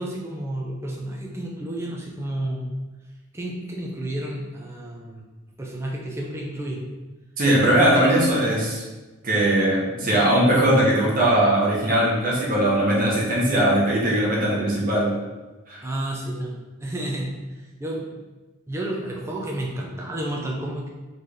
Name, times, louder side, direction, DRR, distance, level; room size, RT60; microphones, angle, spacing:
voice 1, 0.0-2.7 3.3-5.2 5.6-6.8 7.6-8.3 15.8-16.5 16.8-17.3 17.8-18.1 18.7-20.9, right 1 dB, 15° right, -2 dB, 0.6 m, -31 dB
voice 2, 7.4-8.8 9.2-15.1 15.7-15.8, right 1 dB, 40° right, -6 dB, 1.3 m, -20 dB
4.0 x 3.2 x 4.0 m, 1.2 s
head